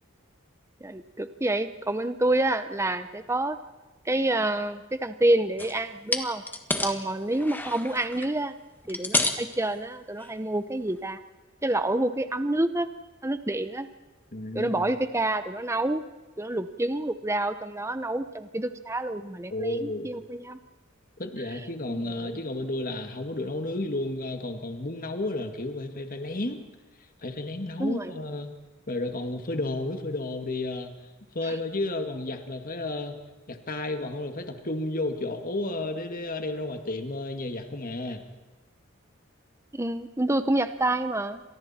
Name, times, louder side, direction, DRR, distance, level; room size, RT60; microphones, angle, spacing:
voice 1, 0.8-3.6 4.0-6.4 6.8-8.5 8.9-11.2 11.6-12.9 13.2-13.9 14.5-16.0 16.4-20.6 21.5-21.6 21.9-22.4 27.8-28.2 31.4-31.6 39.7-41.4, right 1 dB, 15° right, 10 dB, 0.8 m, -28 dB
sound 1, 5.6-5.8 6.1-7.0 7.3-8.3 8.8-9.5 10.2-10.3 10.8-10.9, left 2 dB, 10° left, 1.5 m, -29 dB
voice 2, 14.3-14.9 19.5-20.1 21.2-26.6 27.2-28.5 28.9-30.9 31.3-33.2 33.5-38.2, left 2 dB, 40° left, 5 dB, 2.0 m, -32 dB
29.5 x 26.5 x 4.4 m, 1.2 s
head